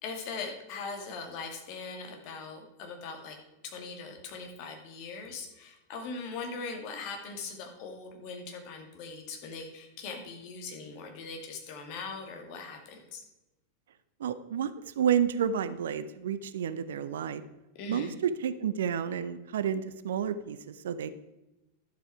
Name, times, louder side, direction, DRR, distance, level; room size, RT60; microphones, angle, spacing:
voice 1, 0.0-3.4 3.6-13.2 17.7-18.2, left 4 dB, 45° left, 3 dB, 2.3 m, -40 dB
voice 2, 14.2-17.4 17.9-21.1, right 8 dB, 60° right, 13 dB, 0.6 m, -30 dB
11.5 x 7.7 x 4.7 m, 1.0 s
figure-of-eight pair, 90°, 0 cm